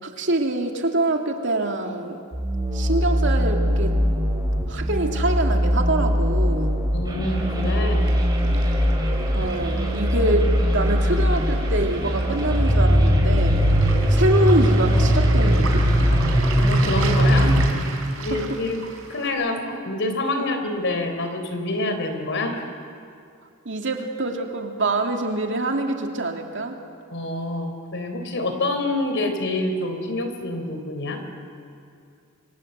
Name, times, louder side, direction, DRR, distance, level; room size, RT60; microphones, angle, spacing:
voice 1, 0.0-2.2 2.7-4.0 4.7-6.8 9.3-13.6 14.1-16.2 18.3-18.5 20.4-20.5 23.6-26.8, right 2 dB, 60° right, 3 dB, 2.6 m, -25 dB
sound 1, 2.3-17.7, equal, 20° right, 4.3 m, -20 dB
voice 2, 6.9-8.1 16.6-17.6 18.2-18.8 19.1-22.6 27.1-31.2, left 2 dB, 60° left, 6 dB, 3.9 m, -27 dB
Waves surf, 7.3-19.3, right 4 dB, 75° right, 4.1 m, -37 dB
29.0 x 25.5 x 8.0 m, 2.4 s
head